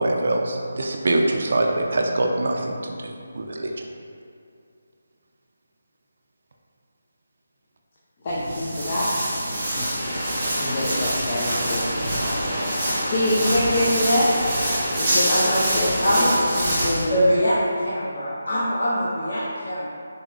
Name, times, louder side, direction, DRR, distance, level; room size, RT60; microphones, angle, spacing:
voice 1, 0.0-3.8, right 2 dB, 55° right, 1 dB, 0.4 m, -24 dB
voice 2, 8.2-9.1 9.5-9.9 10.6-11.8 13.0-14.3 15.1-16.3 16.5-17.2, left 1 dB, 35° left, -8 dB, 0.5 m, -24 dB
Walk footsteps, 8.3-17.0, right 1 dB, 15° right, 1.2 m, -26 dB
sound 1, 9.9-16.1, equal, 10° left, 1.0 m, -30 dB
voice 3, 17.1-19.9, equal, 75° left, -9 dB, 1.2 m, -23 dB
3.9 x 3.5 x 2.4 m, 2.5 s
figure-of-eight pair, 165°, 0 cm